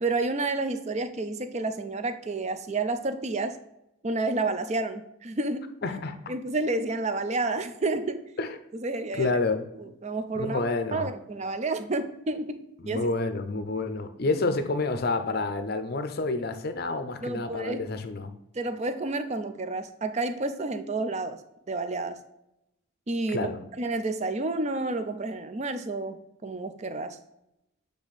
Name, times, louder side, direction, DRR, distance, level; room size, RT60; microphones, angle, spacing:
voice 1, 0.0-3.6 4.0-5.8 6.3-8.3 8.7-9.4 9.8-10.6 10.9-13.1 17.2-17.8 18.5-21.4 21.7-22.2 23.1-23.5 23.8-27.2, right 2 dB, 30° right, 9 dB, 0.4 m, -30 dB
voice 2, 5.8-6.2 8.4-8.5 9.1-9.7 10.3-11.1 12.8-18.3 23.3-23.6, left 3 dB, 45° left, 9 dB, 0.6 m, -29 dB
8.0 x 3.4 x 4.0 m, 0.86 s
head